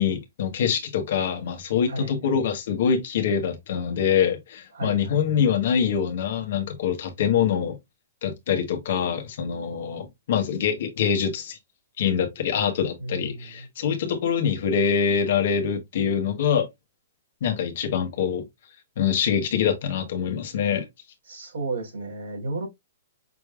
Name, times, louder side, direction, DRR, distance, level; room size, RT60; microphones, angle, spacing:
voice 1, 0.0-7.8 8.2-11.6 12.0-16.7 17.4-18.4 19.0-20.8, left 7 dB, 60° left, 1.3 m, -24 dB
voice 2, 1.9-2.2 4.7-5.1 13.0-13.7 21.3-22.7, right 2 dB, 80° right, 3.2 m, -33 dB
6.0 x 3.3 x 2.4 m
hypercardioid pair, 145°, 0 cm